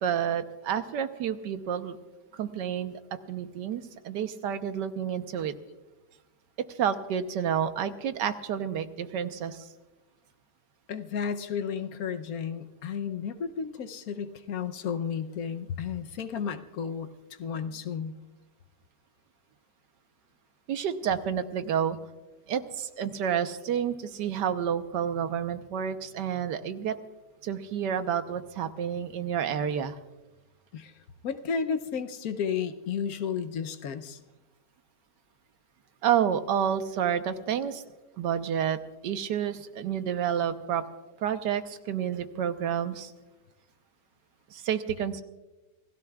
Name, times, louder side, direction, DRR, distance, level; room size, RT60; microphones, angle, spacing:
voice 1, 0.0-2.0 2.3-3.0 3.3-5.5 6.7-9.7 20.7-22.0 22.5-27.0 27.4-30.0 36.0-37.8 38.2-40.8 41.2-43.1 44.5-45.2, right 8 dB, 90° right, 10 dB, 1.5 m, -29 dB
voice 2, 10.9-17.1 17.4-18.2 30.7-30.9 31.2-34.2, left 7 dB, 65° left, 9 dB, 1.1 m, -33 dB
27.5 x 16.5 x 2.3 m, 1.1 s
omnidirectional pair, 1.8 m